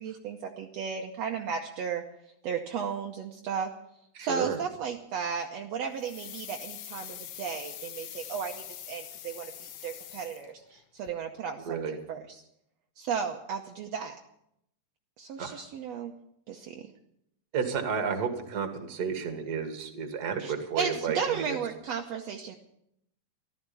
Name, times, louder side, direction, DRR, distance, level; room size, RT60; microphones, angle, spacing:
voice 1, 0.0-2.0 2.4-3.7 4.2-12.4 13.0-14.2 15.2-16.1 16.5-16.9 20.4-22.6, right 6 dB, 70° right, 2 dB, 1.9 m, -34 dB
voice 2, 4.2-4.6 11.6-12.0 15.4-15.6 17.5-21.6, right 6 dB, 40° right, 6 dB, 2.0 m, -32 dB
sound 1, 6.0-10.8 11.1-11.2, left 11 dB, 75° left, 1.3 m, -43 dB
14.5 x 13.0 x 7.0 m, 0.76 s
omnidirectional pair, 3.4 m